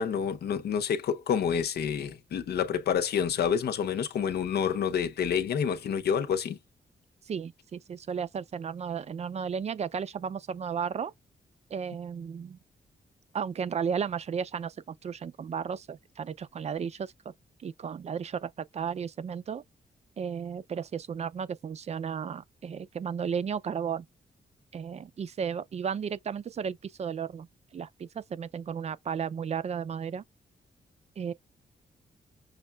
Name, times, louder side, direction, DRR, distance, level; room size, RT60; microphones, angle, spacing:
voice 1, 0.0-6.6, left 7 dB, 85° left, 0.7 m, -28 dB
voice 2, 7.3-11.1 11.7-12.6 13.3-17.3 17.6-19.6 20.2-24.1 24.7-30.2 31.2-31.3, right 7 dB, 40° right, 0.4 m, -34 dB
6.4 x 2.3 x 2.2 m
wide cardioid pair, 145°, 16 cm